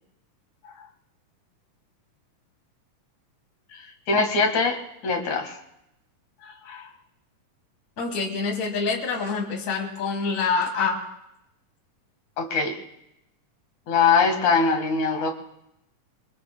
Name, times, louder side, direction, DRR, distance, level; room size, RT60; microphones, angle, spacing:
voice 1, 3.7-5.6 6.7-6.9 12.4-12.8 13.9-15.3, left 4 dB, 65° left, 4 dB, 3.0 m, -23 dB
voice 2, 8.0-11.0, left 4 dB, 25° left, 0 dB, 2.1 m, -26 dB
27.0 x 23.5 x 2.2 m, 0.83 s
omnidirectional pair, 3.9 m